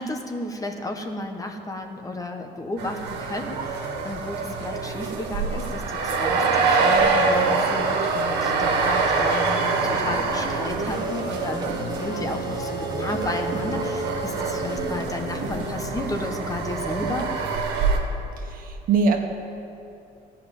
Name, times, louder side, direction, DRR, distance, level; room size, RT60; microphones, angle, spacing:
voice 1, 0.0-17.3, left 2 dB, 20° left, 4 dB, 1.1 m, -33 dB
sound 1, 2.8-18.0, right 4 dB, 85° right, 1.7 m, -25 dB
sound 2, 6.2-17.5, right 4 dB, 25° right, 1.4 m, -34 dB
sound 3, 9.5-15.8, left 2 dB, 55° left, 2.5 m, -35 dB
voice 2, 18.4-19.2, right 4 dB, 55° right, 3 dB, 1.5 m, -22 dB
15.5 x 5.7 x 9.2 m, 2.6 s
cardioid pair, 110°, 17 cm